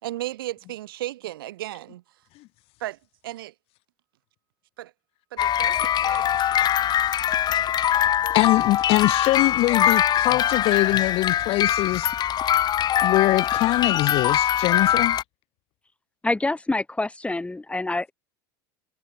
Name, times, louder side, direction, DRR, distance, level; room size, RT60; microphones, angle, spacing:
voice 1, 0.0-2.0 2.8-3.0 3.2-3.5 4.8-4.9 5.3-6.5, right 15 dB, 80° right, 2.2 m, -35 dB
sound 1, 5.4-15.2, left 10 dB, 35° left, 0.6 m, -22 dB
voice 2, 8.3-12.1 13.0-15.2, left 20 dB, 55° left, 2.3 m, -23 dB
voice 3, 16.2-18.1, left 2 dB, 10° left, 3.9 m, -26 dB
hypercardioid pair, 85°, 12 cm